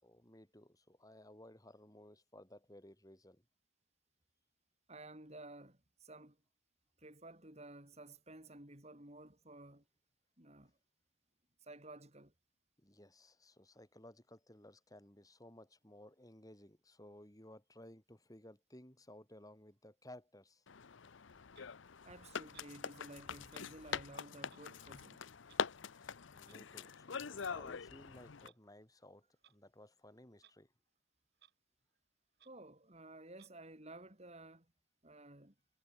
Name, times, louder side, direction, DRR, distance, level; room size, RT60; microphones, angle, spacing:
voice 1, 0.0-3.4 12.8-20.6 26.0-30.7, left 1 dB, 20° left, 4.7 m, -58 dB
voice 2, 4.9-6.4 7.0-9.8 10.4-10.7 11.6-12.3 22.0-25.2 32.4-34.7 35.0-35.5, right 2 dB, 35° right, 4.4 m, -54 dB
sound 1, 20.7-28.5, left 6 dB, 75° left, 0.7 m, -44 dB
Clock, 21.5-21.7 22.5-22.7 23.5-23.6 24.5-24.6 25.5-25.6 26.5-26.6 27.3-27.6 28.4-28.6 29.4-29.6 30.4-30.5 30.9-31.0 31.3-31.5 31.9-32.0 32.3-32.5 33.3-33.5, right 11 dB, 55° right, 6.7 m, -66 dB
head